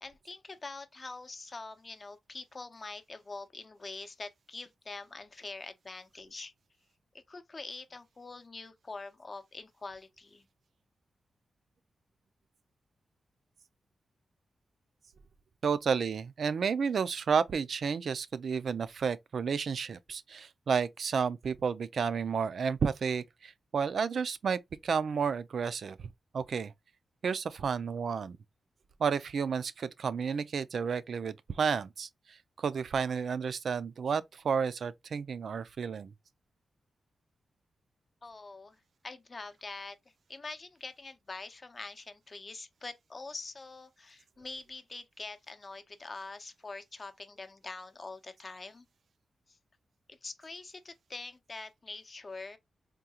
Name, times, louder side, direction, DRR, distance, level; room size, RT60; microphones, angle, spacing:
voice 1, 0.0-6.5 7.3-10.4 38.2-38.8 39.0-40.0 40.3-48.9 50.1-52.6, left 3 dB, 40° left, 0.6 m, -44 dB
voice 2, 15.6-26.1 26.3-26.7 27.2-28.4 29.0-36.1, right 6 dB, 70° right, 0.3 m, -31 dB
3.6 x 2.3 x 2.8 m
cardioid pair, 75°, 0 cm